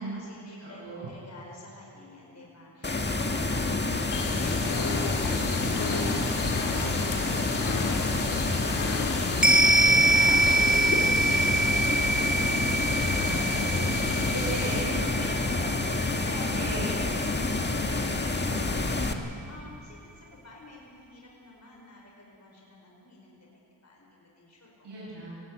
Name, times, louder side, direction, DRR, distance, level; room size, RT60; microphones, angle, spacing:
voice 1, 0.0-0.8 1.1-4.0 4.3-10.7 11.0-12.7 13.1-16.5 16.9-24.9, left 1 dB, 40° left, -2 dB, 5.1 m, -47 dB
voice 2, 0.6-1.1 10.1-11.0 14.2-15.0 16.5-16.9 18.4-18.7 24.8-25.3, right 2 dB, 85° right, -9 dB, 7.3 m, -37 dB
sound 1, 2.8-19.1, left 2 dB, 25° left, 1.8 m, -28 dB
sound 2, 4.1-14.8, left 4 dB, 90° left, 2.3 m, -33 dB
sound 3, 9.4-18.0 18.3-18.4, right 2 dB, ahead, 2.0 m, -25 dB
20.0 x 15.5 x 9.6 m, 2.6 s
cardioid pair, 60°, 40 cm